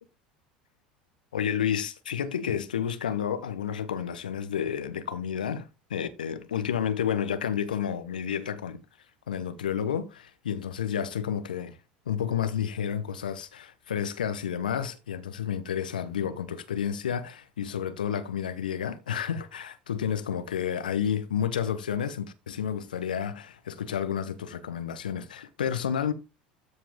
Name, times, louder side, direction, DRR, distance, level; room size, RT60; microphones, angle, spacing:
voice 1, 1.3-8.8 9.3-11.8 12.1-26.1, left 8 dB, 80° left, 1.1 m, -30 dB
13.0 x 4.8 x 3.6 m
figure-of-eight pair, 75°, 5 cm